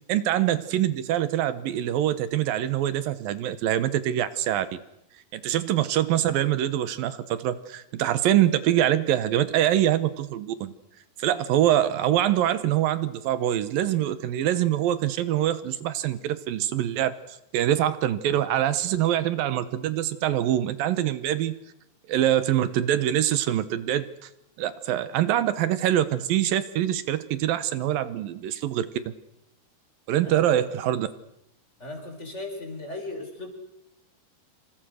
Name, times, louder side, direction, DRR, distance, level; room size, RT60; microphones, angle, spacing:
voice 1, 0.1-4.8 5.3-10.7 11.2-17.1 17.5-21.6 22.1-24.3 24.6-29.1 30.1-31.1, right 12 dB, 70° right, 15 dB, 2.6 m, -24 dB
voice 2, 31.8-33.5, left 2 dB, 15° left, 4 dB, 5.2 m, -36 dB
27.5 x 26.5 x 6.4 m, 0.84 s
omnidirectional pair, 4.6 m